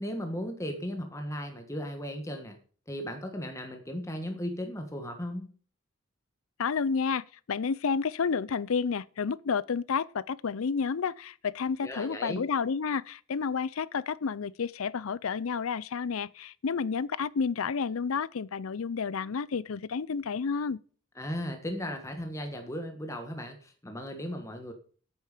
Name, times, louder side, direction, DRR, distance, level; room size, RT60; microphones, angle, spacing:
voice 1, 0.0-2.6 2.9-5.5 11.8-12.4 21.1-24.7, equal, 15° left, 1.5 m, -36 dB
voice 2, 6.6-20.8, left 5 dB, 80° left, 0.5 m, -30 dB
9.3 x 8.8 x 6.7 m
head